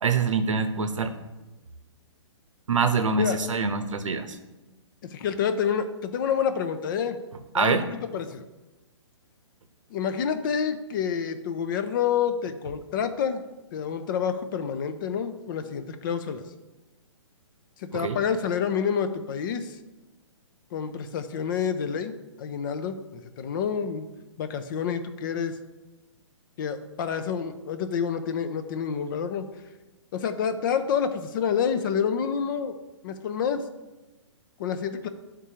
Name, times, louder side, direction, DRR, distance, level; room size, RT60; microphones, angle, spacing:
voice 1, 0.0-1.1 2.7-4.4 7.5-7.8 17.9-18.2, right 5 dB, 85° right, 8 dB, 0.7 m, -25 dB
voice 2, 5.0-7.2 7.5-8.5 9.9-13.4 13.7-16.4 17.8-19.8 20.7-24.1 24.4-25.6 26.6-29.5 30.1-32.8 33.0-33.7 34.6-35.1, left 7 dB, 40° left, 9 dB, 0.5 m, -28 dB
10.5 x 3.7 x 2.8 m, 1.1 s
hypercardioid pair, 135°, 16 cm